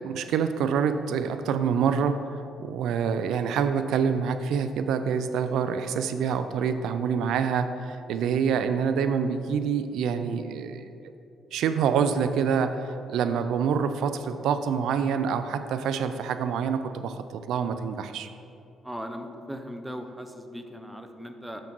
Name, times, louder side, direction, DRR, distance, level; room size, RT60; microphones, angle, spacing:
voice 1, 0.0-10.9 11.5-18.3, right 6 dB, 80° right, 10 dB, 0.3 m, -26 dB
voice 2, 18.8-21.6, equal, 5° right, 6 dB, 0.6 m, -38 dB
7.0 x 3.8 x 6.0 m, 2.7 s
cardioid pair, 90°, 0 cm